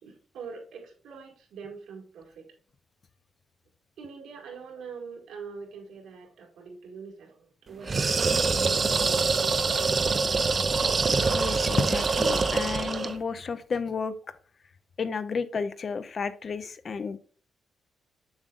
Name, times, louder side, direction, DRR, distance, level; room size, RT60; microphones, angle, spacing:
voice 1, 0.0-2.5 4.0-10.4, right 5 dB, 85° right, 1 dB, 2.0 m, -43 dB
sound 1, 7.8-13.2, right 4 dB, 30° right, 0.5 m, -25 dB
voice 2, 11.3-14.1 15.0-17.2, left 5 dB, 40° left, 12 dB, 0.5 m, -31 dB
7.2 x 6.4 x 2.5 m, 0.41 s
cardioid pair, 135°, 0 cm